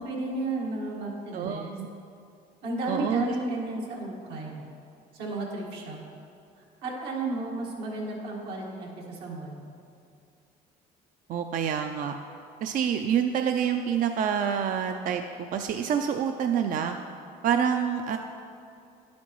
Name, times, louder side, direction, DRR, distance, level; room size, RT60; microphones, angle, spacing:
voice 1, 0.0-1.8 2.6-4.6 5.1-6.0 6.8-9.6, right 2 dB, 90° right, -2 dB, 1.7 m, -33 dB
voice 2, 1.3-1.9 2.9-3.3 11.3-12.1 12.6-15.2 15.5-17.0 17.4-18.2, right 8 dB, 55° right, 6 dB, 0.4 m, -27 dB
10.0 x 8.4 x 3.0 m, 2.5 s
cardioid pair, 110°, 17 cm